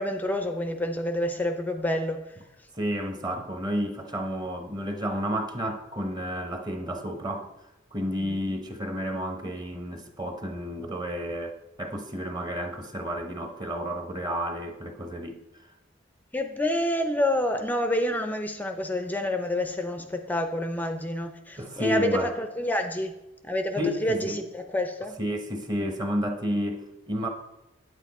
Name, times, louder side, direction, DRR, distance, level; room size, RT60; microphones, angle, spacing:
voice 1, 0.0-2.4 8.2-8.4 16.3-23.2 23.4-25.2, left 1 dB, 10° left, 0.5 m, -28 dB
voice 2, 2.7-7.5 7.9-15.7 21.6-22.3 23.8-24.4 25.2-27.3, equal, 20° right, 1.0 m, -31 dB
8.9 x 8.2 x 4.2 m
head